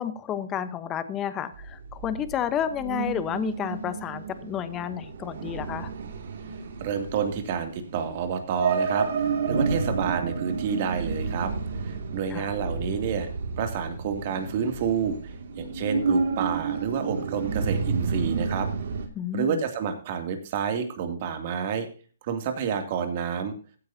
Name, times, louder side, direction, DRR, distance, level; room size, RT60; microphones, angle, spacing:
voice 1, 0.0-5.9 12.3-12.5 19.1-19.6, left 9 dB, 15° left, 12 dB, 1.0 m, -31 dB
sound 1, 1.5-19.1, right 5 dB, 65° right, 2.4 m, -30 dB
voice 2, 6.8-11.5 11.8-13.3 13.6-18.7 19.3-21.9 22.2-23.5, right 7 dB, 40° right, 6 dB, 2.6 m, -29 dB
15.0 x 9.4 x 2.8 m, 0.38 s
hypercardioid pair, 160°, 0 cm